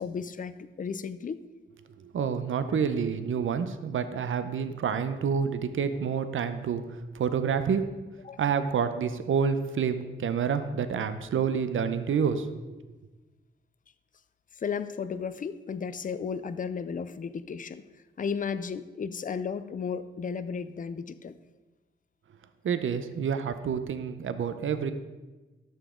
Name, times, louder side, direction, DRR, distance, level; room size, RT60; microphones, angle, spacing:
voice 1, 0.0-1.4 8.2-8.4 14.6-17.8 18.2-21.4, left 6 dB, 40° left, 13 dB, 0.5 m, -34 dB
voice 2, 2.0-7.8 8.4-12.5 22.6-24.9, right 6 dB, 70° right, 10 dB, 0.7 m, -28 dB
12.0 x 7.2 x 3.7 m, 1.2 s
wide cardioid pair, 100°, 21 cm